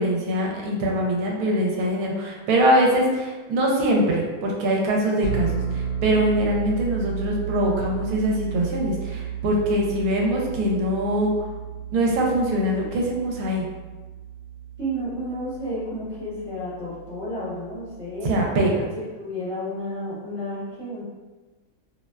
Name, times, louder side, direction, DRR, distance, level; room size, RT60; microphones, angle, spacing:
voice 1, 0.0-11.5 11.9-13.7 18.2-18.8, right 1 dB, 80° right, -1 dB, 1.0 m, -23 dB
sound 1, 5.2-18.7, right 8 dB, 70° left, 0.9 m, -33 dB
voice 2, 14.8-18.3 18.9-21.0, equal, 25° left, -12 dB, 1.0 m, -31 dB
2.6 x 2.1 x 2.2 m, 1.2 s
omnidirectional pair, 1.5 m